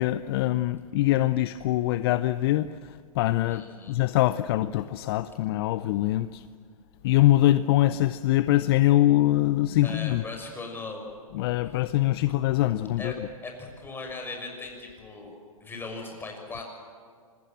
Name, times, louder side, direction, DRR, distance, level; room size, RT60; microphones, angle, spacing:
voice 1, 0.0-6.4 7.0-10.2 11.3-13.3, left 15 dB, 45° left, 14 dB, 0.7 m, -23 dB
voice 2, 3.5-3.9 9.8-11.0 13.0-13.2 13.4-15.4 15.6-16.7, left 3 dB, 10° left, 2 dB, 6.1 m, -38 dB
25.5 x 21.5 x 7.6 m, 2.1 s
hypercardioid pair, 115°, 18 cm